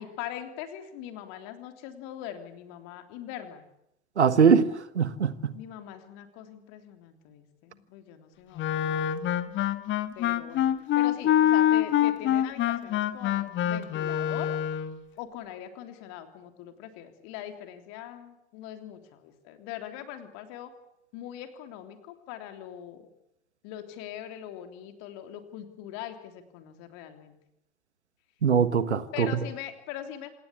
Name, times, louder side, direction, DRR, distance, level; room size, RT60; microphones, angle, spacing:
voice 1, 0.0-3.6 5.5-9.1 10.2-10.7 11.0-14.6 15.2-20.7 21.1-23.1 23.6-27.4 29.1-30.3, left 11 dB, 50° left, 3.4 m, -42 dB
voice 2, 4.2-4.7 4.9-5.5 28.4-29.4, right 6 dB, 80° right, 1.5 m, -22 dB
Wind instrument woodwind instrument, 8.6-15.0, left 11 dB, 35° left, 1.6 m, -25 dB
27.0 x 18.5 x 8.5 m
figure-of-eight pair, 80°, 34 cm